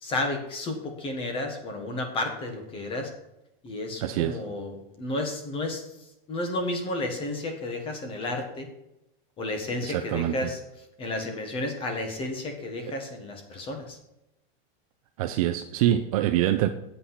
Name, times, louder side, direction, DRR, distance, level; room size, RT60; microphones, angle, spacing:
voice 1, 0.0-3.1 3.6-5.8 6.3-8.7 9.4-10.6 11.0-14.0, left 2 dB, 15° left, 5 dB, 1.5 m, -32 dB
voice 2, 4.0-4.4 9.8-10.3 15.2-16.7, right 12 dB, 35° right, 8 dB, 0.5 m, -25 dB
8.6 x 8.1 x 5.7 m, 0.89 s
supercardioid pair, 175°, 31 cm